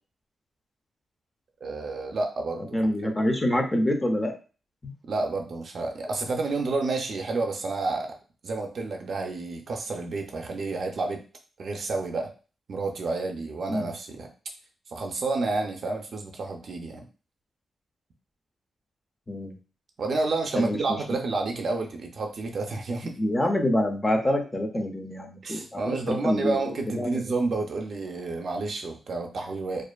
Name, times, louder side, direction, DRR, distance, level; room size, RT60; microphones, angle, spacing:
voice 1, 1.6-2.8 5.0-8.1 8.4-11.2 11.6-12.3 12.7-14.3 14.9-17.0 20.0-23.2 25.4-29.8, right 3 dB, 55° right, 3 dB, 0.4 m, -30 dB
voice 2, 2.7-4.3 4.8-4.9 13.7-13.9 19.3-19.6 20.5-21.0 23.2-27.2, left 1 dB, 20° left, 3 dB, 0.4 m, -26 dB
2.4 x 2.4 x 2.3 m, 0.35 s
wide cardioid pair, 140°, 0 cm